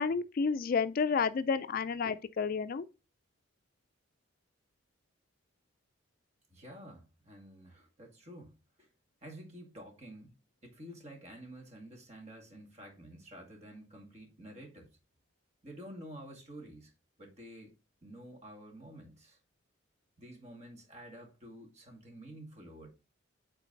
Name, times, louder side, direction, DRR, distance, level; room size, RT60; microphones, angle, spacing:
voice 1, 0.0-2.8, left 5 dB, 45° left, 0.3 m, -30 dB
voice 2, 6.5-8.9 9.2-10.3 10.6-14.9 15.6-16.9 17.2-17.7 18.0-19.4 20.2-22.9, right 1 dB, 35° right, 2.2 m, -50 dB
8.3 x 3.8 x 3.9 m
head